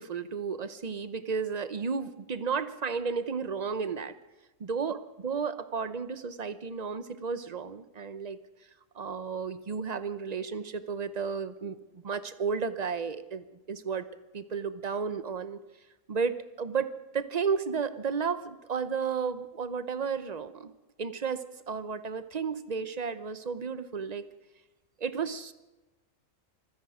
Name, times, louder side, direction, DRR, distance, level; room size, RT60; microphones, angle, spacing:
voice 1, 0.0-4.1 4.6-5.0 5.2-8.4 8.9-14.1 14.3-15.6 16.1-16.9 17.1-20.7 21.0-24.2 25.0-25.5, right 5 dB, 35° right, 13 dB, 0.7 m, -33 dB
26.0 x 10.0 x 5.0 m, 1.1 s
omnidirectional pair, 1.4 m